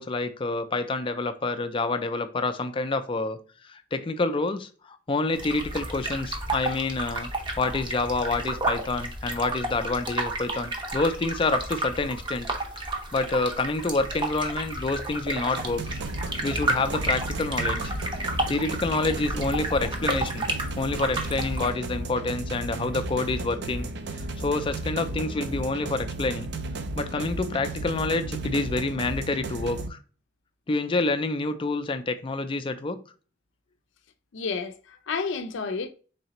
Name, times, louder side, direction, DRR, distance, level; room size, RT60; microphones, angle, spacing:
voice 1, 0.0-3.4 3.6-7.3 7.6-12.5 12.8-15.8 16.4-17.8 18.5-20.5 20.8-23.9 24.1-26.5 27.0-30.0 30.7-33.0, left 3 dB, 30° left, 0.4 m, -28 dB
sound 1, 5.3-21.7, right 2 dB, 25° right, 0.7 m, -32 dB
sound 2, 15.6-29.9, right 2 dB, 65° right, 0.5 m, -34 dB
voice 2, 34.3-35.9, left 4 dB, 85° left, 0.5 m, -31 dB
3.9 x 3.3 x 2.8 m
head